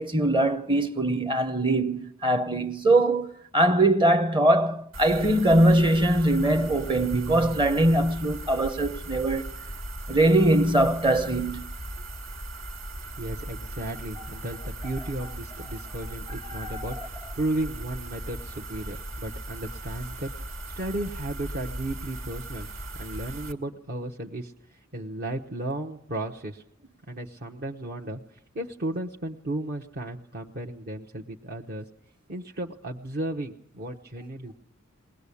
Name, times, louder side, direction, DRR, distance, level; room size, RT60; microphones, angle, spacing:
voice 1, 0.0-9.4 10.1-11.7 16.5-16.9, right 1 dB, 25° right, 0.8 m, -22 dB
sound 1, 4.9-23.5, right 1 dB, 80° right, 2.1 m, -38 dB
voice 2, 13.2-20.3 20.8-22.7 22.9-26.6 27.1-31.9 32.3-34.5, right 1 dB, 50° right, 1.1 m, -34 dB
21.5 x 19.5 x 8.4 m
head